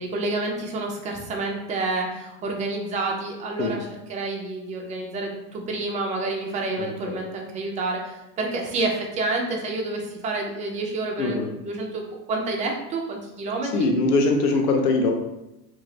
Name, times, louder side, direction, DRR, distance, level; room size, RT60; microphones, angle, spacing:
voice 1, 0.0-13.9, right 2 dB, 15° right, 0 dB, 0.3 m, -29 dB
voice 2, 6.8-7.2 11.2-11.5 13.7-15.1, left 3 dB, 75° left, 3 dB, 0.8 m, -22 dB
2.6 x 2.5 x 3.1 m, 0.94 s
hypercardioid pair, 100°, 48 cm